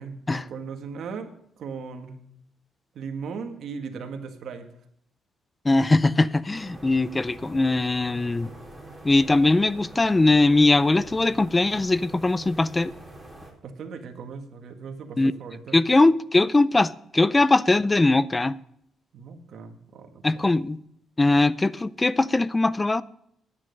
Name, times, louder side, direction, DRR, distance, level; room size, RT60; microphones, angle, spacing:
voice 1, 0.0-2.2 2.9-4.7 13.6-15.8 19.1-20.5, right 5 dB, 65° right, 1.6 m, -38 dB
voice 2, 5.6-8.5 9.0-12.9 15.2-15.3 15.7-18.6 20.2-20.8 21.2-23.0, left 2 dB, 20° left, 0.5 m, -21 dB
sound 1, 6.5-13.5, right 2 dB, ahead, 3.8 m, -45 dB
9.8 x 9.6 x 5.3 m
cardioid pair, 90°, 0 cm